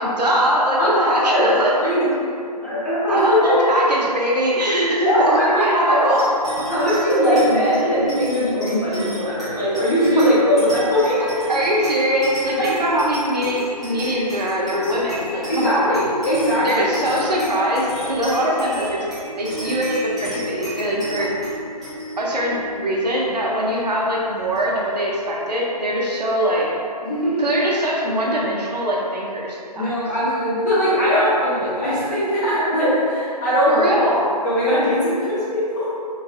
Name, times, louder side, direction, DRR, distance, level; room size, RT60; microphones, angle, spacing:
voice 1, 0.0-2.2 2.7-2.8 3.1-6.2 6.6-6.7 7.8-7.9 10.1-10.2 11.2-15.9 16.6-21.3 22.2-26.7 27.4-29.9 33.7-34.3, equal, 75° right, -4 dB, 0.7 m, -22 dB
voice 2, 0.8-2.0 2.6-3.5 5.0-6.1 6.7-11.3 12.6-12.7 15.5-16.8 18.4-18.5 21.2-21.3 27.0-27.5 29.7-33.9 34.4-35.9, equal, 25° left, -12 dB, 1.0 m, -20 dB
sound 1, 6.2-25.0, right 1 dB, 10° right, 0.3 m, -33 dB
3.1 x 2.5 x 2.4 m, 2.4 s
figure-of-eight pair, 155°, 21 cm